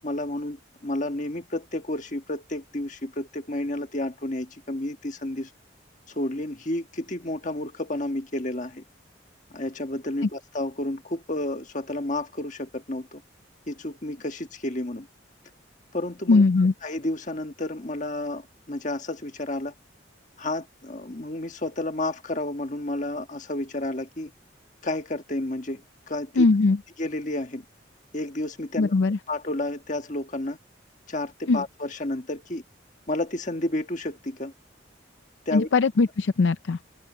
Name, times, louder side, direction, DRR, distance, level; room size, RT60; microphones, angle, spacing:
voice 1, 0.0-5.5 6.1-8.8 9.5-13.2 13.7-15.1 15.9-19.7 20.4-24.3 24.8-26.5 27.0-27.6 28.1-28.9 29.3-30.6 31.1-32.6 33.1-34.5 35.4-35.7, left 1 dB, 40° left, 1.5 m, -31 dB
voice 2, 16.3-16.7 26.4-26.8 28.8-29.2 31.5-31.6 35.5-36.8, left 3 dB, 70° left, 0.5 m, -20 dB
head